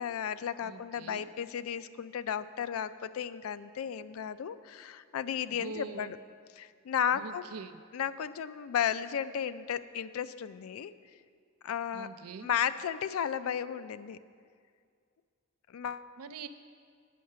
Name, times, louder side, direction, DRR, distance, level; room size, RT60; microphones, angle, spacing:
voice 1, 0.0-6.2 6.6-7.4 7.9-10.9 11.6-12.1 12.4-14.2 15.7-16.1, left 8 dB, 75° left, 14 dB, 0.3 m, -34 dB
voice 2, 0.6-1.3 5.5-6.1 7.1-7.8 11.9-12.5 16.2-16.5, right 4 dB, 85° right, 11 dB, 0.5 m, -44 dB
9.3 x 6.4 x 6.7 m, 2.1 s
head